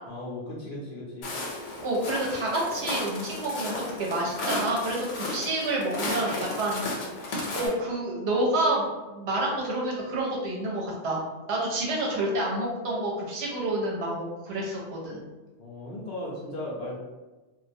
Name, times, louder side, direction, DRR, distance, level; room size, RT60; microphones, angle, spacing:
voice 1, 0.1-1.3 15.6-17.0, left 1 dB, 60° left, -5 dB, 0.6 m, -36 dB
Walk footsteps, 1.2-7.7, left 2 dB, 80° left, 0.9 m, -34 dB
voice 2, 1.8-6.9 7.3-8.9 9.1-11.2 11.5-15.2, right 1 dB, 65° right, -3 dB, 0.8 m, -28 dB
2.2 x 2.1 x 2.6 m, 1.2 s
omnidirectional pair, 1.2 m